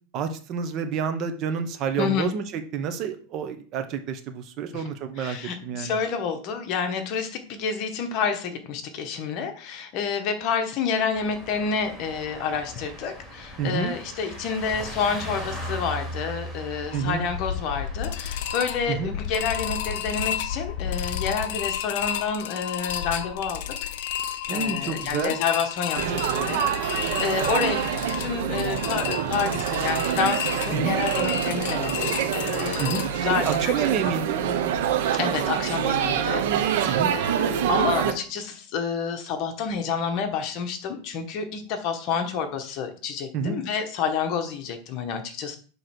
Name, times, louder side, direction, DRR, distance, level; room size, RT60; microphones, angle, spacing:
voice 1, 0.1-2.4 2.7-5.4 5.6-6.0 13.6-14.0 16.9-17.2 18.9-19.2 24.5-25.4 30.7-31.0 32.8-33.0 33.3-34.4 36.9-37.1 43.3-43.6, right 6 dB, 35° right, 8 dB, 1.0 m, -28 dB
voice 2, 2.0-2.3 4.7-4.8 5.2-23.7 24.5-33.8 35.1-45.6, left 6 dB, 40° left, 6 dB, 1.3 m, -29 dB
sound 1, 11.1-21.4, equal, ahead, 3.0 m, -39 dB
sound 2, 16.9-33.6, left 10 dB, 65° left, 0.7 m, -32 dB
Laughter / Chatter / Crowd, 26.0-38.1, right 9 dB, 65° right, 1.0 m, -26 dB
7.9 x 3.2 x 6.0 m, 0.40 s
supercardioid pair, 150°, 0 cm